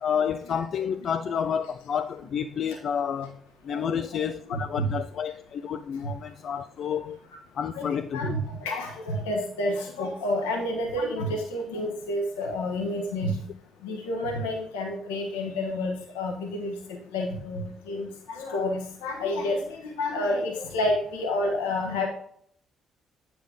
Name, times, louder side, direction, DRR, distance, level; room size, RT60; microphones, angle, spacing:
voice 1, 0.0-3.4 3.6-7.2 7.6-8.3, left 7 dB, 55° left, 0.4 m, -30 dB
voice 2, 3.7-4.2 4.5-4.9 6.0-6.1 7.7-13.5 13.8-22.1, left 1 dB, 80° left, 1.4 m, -29 dB
8.9 x 6.9 x 3.6 m
hypercardioid pair, 45°, 0 cm